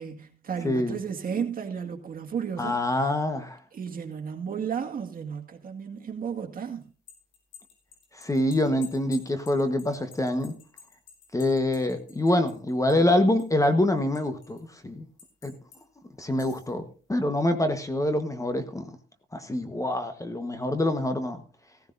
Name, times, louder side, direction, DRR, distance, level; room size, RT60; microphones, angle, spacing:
voice 1, 0.0-2.8 3.7-6.9, right 7 dB, 45° right, 2.0 m, -33 dB
voice 2, 0.6-1.0 2.6-3.6 8.1-10.5 11.3-15.0 15.4-15.5 16.2-16.8 17.1-18.9 19.3-21.4, left 1 dB, 15° left, 1.2 m, -25 dB
sound 1, 6.8-13.1 13.4-14.6 15.2-15.8 16.2-16.7, left 7 dB, 80° left, 5.7 m, -50 dB
15.5 x 14.5 x 2.6 m
cardioid pair, 90°, 20 cm